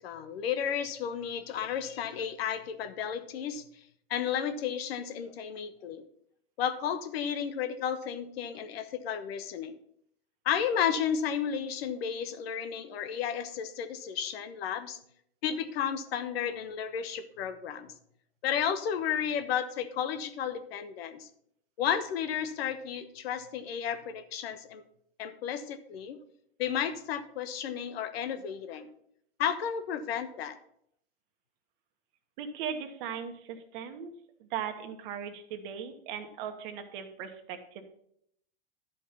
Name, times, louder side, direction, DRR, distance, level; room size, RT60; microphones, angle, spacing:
voice 1, 0.0-3.6 4.1-6.0 6.6-9.7 10.4-15.0 15.4-17.9 18.4-21.3 21.8-24.8 25.2-26.2 26.6-28.9 29.4-30.6, left 8 dB, 65° left, 11 dB, 1.1 m, -33 dB
voice 2, 32.4-34.1 34.5-37.8, right 8 dB, 50° right, 6 dB, 1.4 m, -38 dB
11.5 x 5.3 x 5.6 m, 0.71 s
hypercardioid pair, 135°, 33 cm